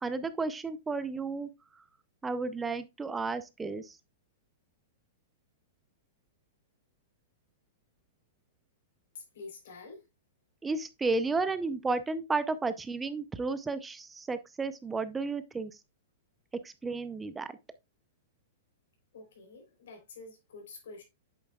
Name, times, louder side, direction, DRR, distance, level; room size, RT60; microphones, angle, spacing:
voice 1, 0.0-1.5 2.2-3.9 10.6-15.7 16.6-17.5, right 3 dB, 10° right, 0.5 m, -32 dB
voice 2, 9.1-10.0 19.1-21.0, left 3 dB, 75° left, 3.5 m, -48 dB
8.4 x 7.1 x 2.3 m
hypercardioid pair, 130°, 0 cm